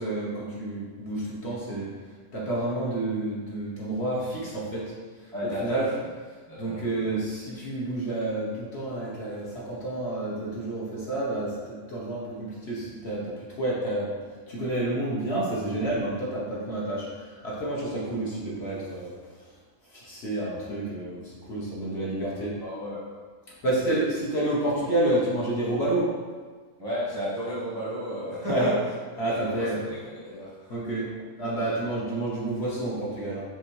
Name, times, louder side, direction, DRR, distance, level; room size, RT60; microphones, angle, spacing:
voice 1, 0.0-1.9 2.3-4.8 5.6-5.9 6.6-11.5 11.9-14.1 14.5-19.1 19.9-22.5 23.6-26.1 28.5-28.7 29.2-29.8 30.7-31.1 31.4-33.4, right 1 dB, 50° left, -6 dB, 1.1 m, -29 dB
voice 2, 5.3-5.9 6.5-7.1 22.6-23.0 26.8-28.8 29.3-30.7, equal, 20° right, -8 dB, 0.7 m, -33 dB
6.1 x 2.6 x 3.0 m, 1.5 s
omnidirectional pair, 1.6 m